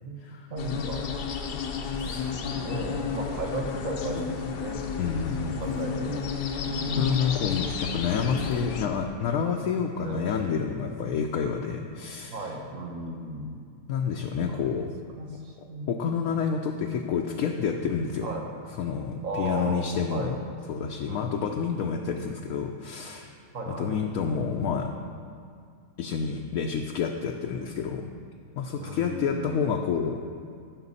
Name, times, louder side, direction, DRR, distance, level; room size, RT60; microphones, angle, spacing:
voice 1, 0.5-1.1 2.0-6.2 6.6-7.3 10.0-10.4 12.3-13.6 14.4-14.9 15.2-16.0 18.2-18.5 19.2-20.3 21.1-21.6 23.5-24.0 28.8-29.6, right 1 dB, 55° right, 1 dB, 1.3 m, -35 dB
sound 1, 0.6-8.9, left 6 dB, 85° left, 1.4 m, -32 dB
voice 2, 2.0-2.3 5.0-5.5 6.9-12.5 13.9-14.9 15.9-18.3 18.8-20.4 20.7-23.4 23.7-24.9 26.0-28.1 28.6-30.2, left 6 dB, 70° left, 2 dB, 0.9 m, -29 dB
sound 2, 5.6-9.1, equal, 5° left, 0.9 m, -49 dB
14.5 x 6.1 x 4.1 m, 2.3 s
omnidirectional pair, 1.7 m